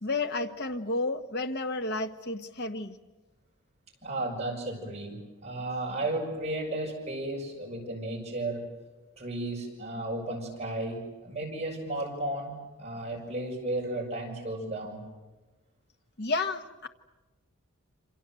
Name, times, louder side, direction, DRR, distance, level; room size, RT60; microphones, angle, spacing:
voice 1, 0.0-2.9 16.2-16.9, left 3 dB, 50° left, 7 dB, 1.5 m, -31 dB
voice 2, 4.0-8.7 9.2-15.0, right 1 dB, 30° right, -1 dB, 6.9 m, -34 dB
28.0 x 26.5 x 7.8 m, 1.2 s
head